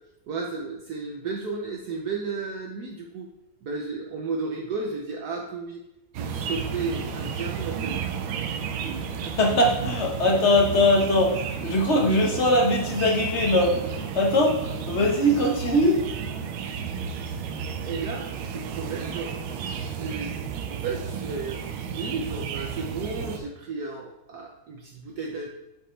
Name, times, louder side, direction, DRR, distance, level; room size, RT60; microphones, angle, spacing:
voice 1, 0.3-3.3 3.6-5.8 6.1-8.0 17.8-19.4 20.0-20.4 20.7-25.5, right 4 dB, 65° right, -1 dB, 1.2 m, -33 dB
sound 1, 6.1-23.4, right 7 dB, 90° right, 1.4 m, -32 dB
voice 2, 9.2-16.0, left 1 dB, 40° left, 0 dB, 1.3 m, -21 dB
8.9 x 5.1 x 3.3 m, 0.87 s
omnidirectional pair, 2.0 m